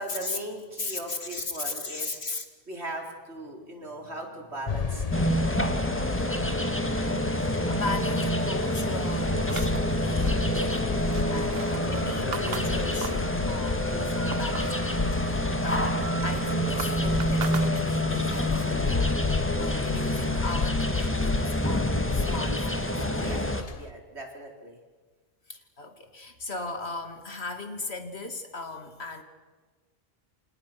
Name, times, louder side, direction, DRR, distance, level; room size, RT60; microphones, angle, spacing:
voice 1, 0.0-2.2 2.7-5.5 11.3-11.6 23.1-23.4 23.8-24.8, right 1 dB, 85° right, 2 dB, 4.7 m, -39 dB
voice 2, 0.8-2.5 6.9-23.4 25.5-29.2, left 3 dB, 75° left, 6 dB, 2.8 m, -38 dB
sound 1, 4.7-23.9, left 5 dB, 40° left, 1.0 m, -33 dB
sound 2, 5.1-23.6, equal, 10° left, 1.8 m, -27 dB
sound 3, 9.5-13.3 13.7-14.8 15.2-18.2, right 6 dB, 65° right, 1.2 m, -40 dB
28.5 x 27.5 x 6.1 m, 1.4 s
omnidirectional pair, 1.1 m